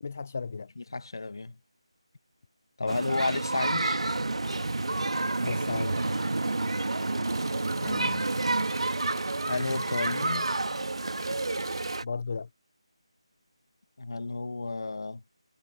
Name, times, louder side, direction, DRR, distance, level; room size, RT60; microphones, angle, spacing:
voice 1, 0.0-0.7 2.8-2.9 5.4-6.3 12.0-12.5, left 5 dB, 20° left, 0.4 m, -35 dB
voice 2, 0.8-1.6 2.8-4.0 7.8-8.3 9.5-10.5 14.0-15.2, left 3 dB, 45° left, 1.2 m, -32 dB
sound 1, 2.9-12.0, right 2 dB, 80° right, 1.6 m, -29 dB
sound 2, 4.4-12.0, right 3 dB, 45° right, 4.5 m, -40 dB
figure-of-eight pair, 180°, 3 cm